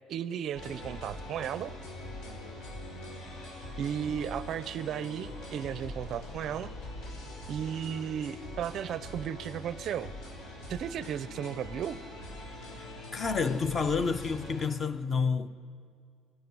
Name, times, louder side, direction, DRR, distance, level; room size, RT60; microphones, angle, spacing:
voice 1, 0.1-1.7 3.8-6.7 7.5-10.1 10.7-12.0, right 9 dB, 45° right, 0.5 m, -35 dB
sound 1, 0.5-14.7, left 1 dB, 75° left, 5.0 m, -43 dB
voice 2, 12.8-15.5, left 5 dB, 25° left, 0.6 m, -29 dB
28.0 x 16.0 x 6.1 m
cardioid pair, 160°, 0 cm